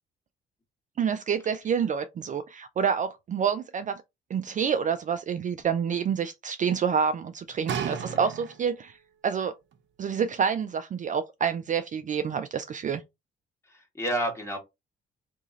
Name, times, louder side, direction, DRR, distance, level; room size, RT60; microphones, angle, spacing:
voice 1, 1.0-4.0 4.3-9.0 9.2-9.5 10.0-13.0, right 7 dB, 40° right, 0.4 m, -28 dB
sound 1, 7.7-9.0 9.7-9.8, right 7 dB, 65° right, 0.7 m, -33 dB
voice 2, 13.6-14.6, right 1 dB, 15° left, 1.6 m, -31 dB
2.9 x 2.7 x 3.8 m
cardioid pair, 90°, 20 cm